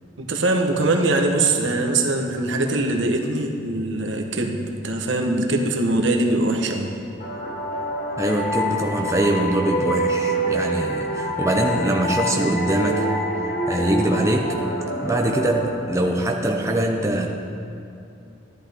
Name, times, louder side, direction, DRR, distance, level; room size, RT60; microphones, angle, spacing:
voice 1, 0.2-6.9, right 2 dB, 75° right, 2 dB, 1.1 m, -22 dB
sound 1, 7.2-16.6, equal, 45° left, 1.1 m, -26 dB
voice 2, 8.2-13.0 13.7-14.5 15.0-17.3, right 1 dB, 15° right, 1 dB, 0.6 m, -23 dB
14.0 x 10.5 x 3.5 m, 2.6 s
head